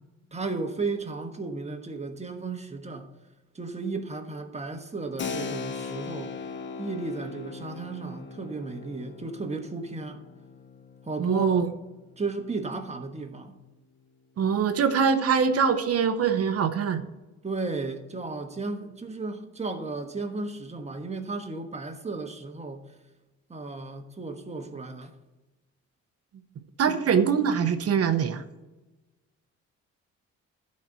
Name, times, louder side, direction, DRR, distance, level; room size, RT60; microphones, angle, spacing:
voice 1, 0.3-3.1 3.5-6.4 6.8-10.2 11.0-11.6 12.2-13.5 17.4-23.0 23.5-25.2 26.9-27.0, right 3 dB, 20° right, 1.3 m, -34 dB
Keyboard (musical), 5.2-13.6, left 5 dB, 40° left, 0.8 m, -40 dB
voice 2, 11.2-11.7 14.4-17.0 26.8-28.4, right 6 dB, 50° right, 1.0 m, -23 dB
12.0 x 4.3 x 7.6 m
cardioid pair, 90°, 30 cm